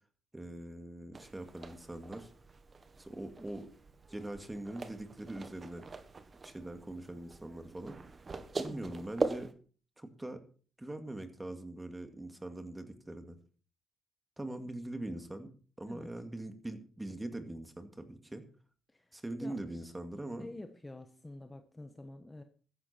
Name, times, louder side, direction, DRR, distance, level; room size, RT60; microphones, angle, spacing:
voice 1, 0.3-2.3 3.0-3.7 4.1-5.8 6.4-8.0 8.6-9.5 10.0-10.4 10.8-13.4 14.4-15.5 15.8-18.4 19.1-20.5, right 1 dB, 15° right, 7 dB, 2.2 m, -42 dB
sound 1, 1.1-9.5, right 4 dB, 35° right, 1.5 m, -42 dB
voice 2, 8.7-9.0 15.9-16.1 18.9-19.9 20.4-22.4, left 2 dB, 15° left, 7 dB, 1.2 m, -48 dB
14.0 x 10.5 x 4.5 m, 0.41 s
cardioid pair, 90°, 0 cm